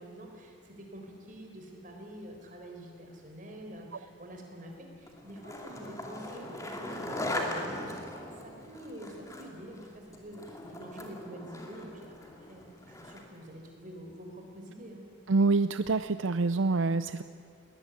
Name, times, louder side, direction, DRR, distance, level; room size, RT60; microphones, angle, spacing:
voice 1, 0.0-15.0, right 1 dB, 40° right, 2 dB, 4.2 m, -47 dB
Skateboard, 5.1-13.4, left 1 dB, 15° left, 2.6 m, -39 dB
voice 2, 15.3-17.2, right 3 dB, 70° right, 12 dB, 0.5 m, -26 dB
21.0 x 18.5 x 9.9 m, 2.2 s
head